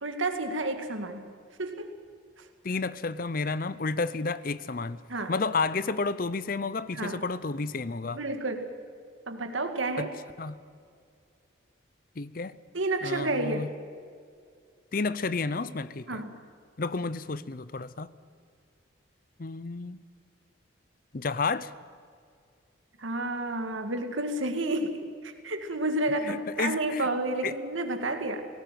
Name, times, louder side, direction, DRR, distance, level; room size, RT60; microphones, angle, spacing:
voice 1, 0.0-1.3 1.6-2.0 2.4-2.5 5.1-5.3 6.9-7.2 8.1-8.7 9.3-10.1 12.7-13.7 16.1-16.3 23.0-28.4, right 2 dB, 85° right, 6 dB, 2.2 m, -30 dB
voice 2, 2.6-5.0 5.3-8.2 10.0-10.1 10.4-10.6 12.2-12.6 13.0-13.7 14.9-16.2 16.8-18.1 19.4-20.0 21.1-21.7 26.2-27.1 27.4-27.5, left 4 dB, 45° left, 16 dB, 0.6 m, -31 dB
18.5 x 17.5 x 9.2 m, 2.2 s
head